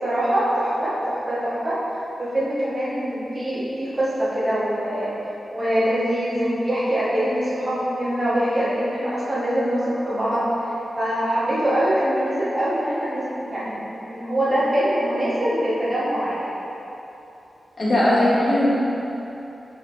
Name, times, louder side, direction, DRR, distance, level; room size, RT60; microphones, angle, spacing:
voice 1, 0.0-1.8 2.2-5.1 5.5-13.8 14.1-16.5, equal, 25° right, -10 dB, 1.1 m, -23 dB
voice 2, 17.8-18.8, left 1 dB, 35° left, -9 dB, 1.1 m, -18 dB
5.0 x 3.2 x 2.6 m, 3.0 s
wide cardioid pair, 125°, 0 cm